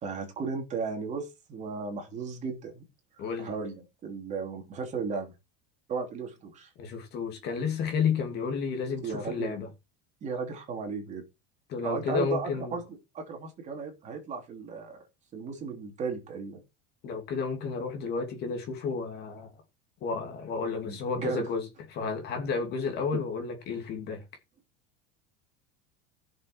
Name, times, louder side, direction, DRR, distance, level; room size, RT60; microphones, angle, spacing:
voice 1, 0.0-2.8 3.4-5.3 5.9-6.7 9.0-9.6 10.2-11.2 11.8-15.0 15.3-16.6 20.8-21.5 23.1-23.2, right 5 dB, 25° right, 3.2 m, -35 dB
voice 2, 3.2-3.5 6.8-9.7 11.7-12.8 17.0-19.5 20.0-21.7 21.9-24.2, left 5 dB, 35° left, 2.6 m, -31 dB
16.0 x 6.7 x 4.7 m
cardioid pair, 180°, 29 cm